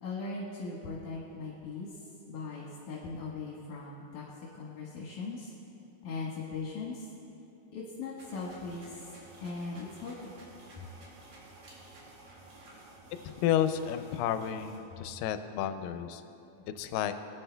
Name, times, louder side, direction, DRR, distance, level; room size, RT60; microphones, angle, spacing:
voice 1, 0.0-1.9 2.3-4.2 4.6-5.5 6.0-7.0 7.7-8.8 9.4-10.3, left 4 dB, 70° left, -6 dB, 2.7 m, -39 dB
sound 1, 8.2-14.8, right 2 dB, 75° right, 3.6 m, -53 dB
voice 2, 13.4-16.2 16.8-17.1, left 10 dB, 90° left, 10 dB, 2.2 m, -31 dB
19.0 x 9.9 x 2.3 m, 2.8 s
omnidirectional pair, 3.9 m